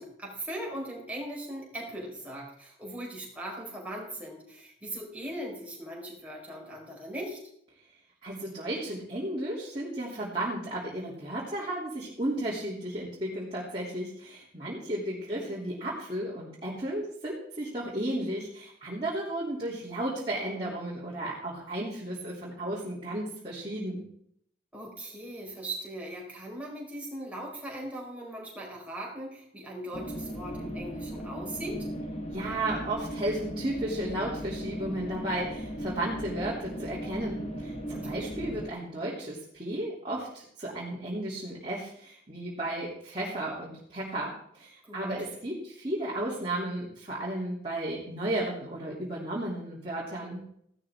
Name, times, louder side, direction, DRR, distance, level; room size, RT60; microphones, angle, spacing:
voice 1, 0.0-7.4 15.3-15.5 24.7-31.9 37.9-38.3 44.8-45.1, right 1 dB, 5° right, -3 dB, 4.5 m, -39 dB
voice 2, 8.2-24.1 32.3-50.4, right 1 dB, 25° right, -7 dB, 3.1 m, -34 dB
sound 1, 29.9-38.7, equal, 35° left, 1.6 m, -37 dB
15.5 x 12.5 x 3.7 m, 0.68 s
head